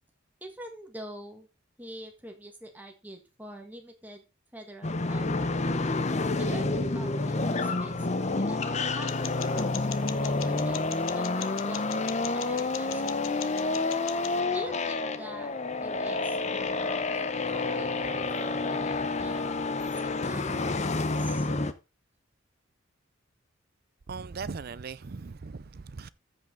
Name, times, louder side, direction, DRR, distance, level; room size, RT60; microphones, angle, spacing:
voice 1, 0.4-1.5 1.8-4.2 4.5-5.5 6.4-8.6 8.9-9.9 10.2-10.8 11.1-11.9 12.3-13.4 14.5-16.8 17.1-19.4 19.8-21.5, right 1 dB, 10° right, 1.6 m, -45 dB
sound 1, 4.8-21.7, left 3 dB, 35° left, 0.7 m, -29 dB
sound 2, 9.1-14.4, left 11 dB, 80° left, 0.8 m, -42 dB
voice 2, 24.1-26.1, right 4 dB, 50° right, 0.5 m, -39 dB
14.0 x 5.4 x 3.9 m
head